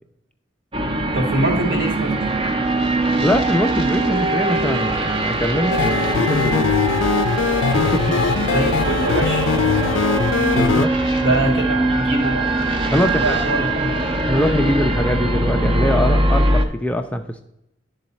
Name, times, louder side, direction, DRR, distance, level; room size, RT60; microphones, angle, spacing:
sound 1, 0.7-16.7, right 2 dB, 30° right, 0.7 m, -21 dB
voice 1, 1.1-2.3 8.3-9.5 11.2-12.4 12.9-13.9, right 1 dB, 70° right, -2 dB, 2.3 m, -23 dB
voice 2, 3.2-6.9 7.7-8.0 10.5-10.9 12.9-13.4 14.3-17.4, equal, 5° left, 5 dB, 0.4 m, -22 dB
sound 2, 5.7-10.9, left 6 dB, 75° left, 0.4 m, -21 dB
11.0 x 3.9 x 4.1 m, 0.82 s
head